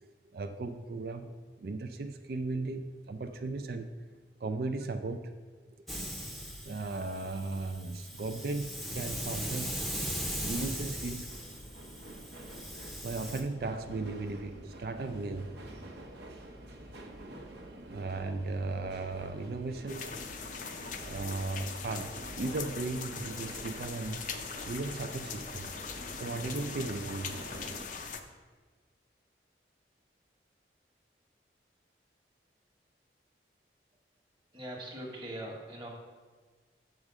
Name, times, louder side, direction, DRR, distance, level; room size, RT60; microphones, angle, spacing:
voice 1, 0.0-3.9 4.4-5.4 6.6-9.7 10.4-11.3 12.7-15.7 16.0-16.1 17.9-20.2 21.0-24.2 24.6-25.7 26.1-27.4, right 3 dB, 55° right, 8 dB, 0.4 m, -36 dB
Hiss, 5.9-13.4, equal, ahead, 0.7 m, -39 dB
sound 1, 9.7-27.9, right 1 dB, 75° right, 0.9 m, -48 dB
sound 2, 19.9-28.2, left 6 dB, 45° left, 0.5 m, -41 dB
voice 2, 34.5-35.9, right 1 dB, 25° right, 0 dB, 1.2 m, -41 dB
6.5 x 5.0 x 6.0 m, 1.4 s
head